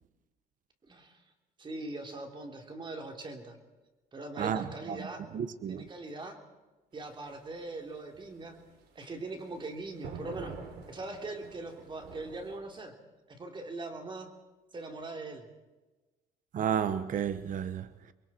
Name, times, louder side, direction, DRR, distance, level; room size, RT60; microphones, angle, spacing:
voice 1, 0.9-1.2 1.6-3.6 4.1-5.3 5.7-6.4 6.9-8.6 9.0-10.6 10.9-12.9 13.3-14.3 14.7-15.5, right 2 dB, 30° right, 3.6 m, -41 dB
voice 2, 4.4-5.0 5.3-5.8 16.5-17.9, right 8 dB, 50° right, 1.1 m, -32 dB
sound 1, 6.9-12.6, right 5 dB, 80° right, 3.8 m, -47 dB
29.0 x 22.5 x 4.5 m
cardioid pair, 110°, 17 cm